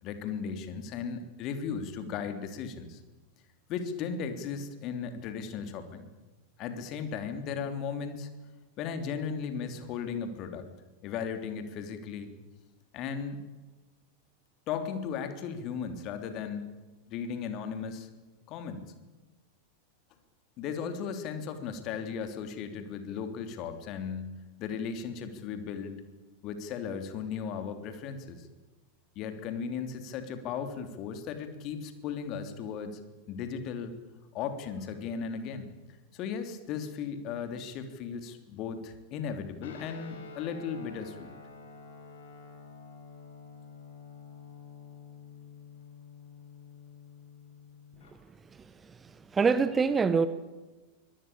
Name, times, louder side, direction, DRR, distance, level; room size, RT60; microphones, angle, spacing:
voice 1, 0.0-3.0 3.7-6.1 6.6-8.3 8.8-10.7 11.0-12.3 12.9-13.4 14.7-16.7 17.1-18.1 18.5-18.8 20.6-24.3 24.6-25.9 26.4-28.5 29.1-33.0 33.3-33.9 34.3-35.7 36.1-41.4, left 6 dB, 40° left, 9 dB, 3.3 m, -36 dB
Guitar, 39.6-48.1, left 5 dB, 60° left, 5.3 m, -49 dB
voice 2, 48.5-50.3, right 5 dB, 15° right, 14 dB, 1.2 m, -26 dB
24.0 x 18.5 x 8.8 m, 1.2 s
figure-of-eight pair, 90°, 0 cm